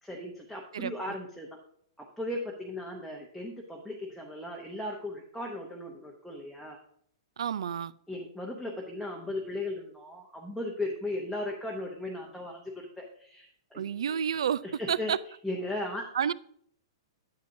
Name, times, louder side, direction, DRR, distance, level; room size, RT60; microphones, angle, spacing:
voice 1, 0.0-1.6 2.0-6.8 8.1-13.8 14.6-15.1 15.4-16.1, left 1 dB, ahead, -2 dB, 0.7 m, -37 dB
voice 2, 7.4-7.9 13.7-14.6 14.9-15.2 16.1-16.3, right 8 dB, 90° right, 19 dB, 0.4 m, -29 dB
9.4 x 8.1 x 2.6 m, 0.65 s
hypercardioid pair, 170°, 3 cm